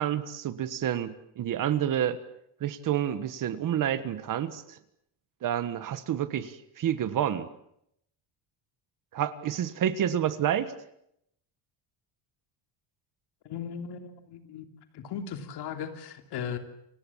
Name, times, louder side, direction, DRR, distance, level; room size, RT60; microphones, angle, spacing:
voice 1, 0.0-2.2 2.6-4.8 5.4-7.5 9.1-10.7, right 10 dB, 40° right, 12 dB, 1.5 m, -29 dB
voice 2, 13.4-14.7 14.9-16.6, left 7 dB, 55° left, 6 dB, 3.1 m, -37 dB
29.5 x 26.0 x 7.4 m, 0.76 s
cardioid pair, 180°, 48 cm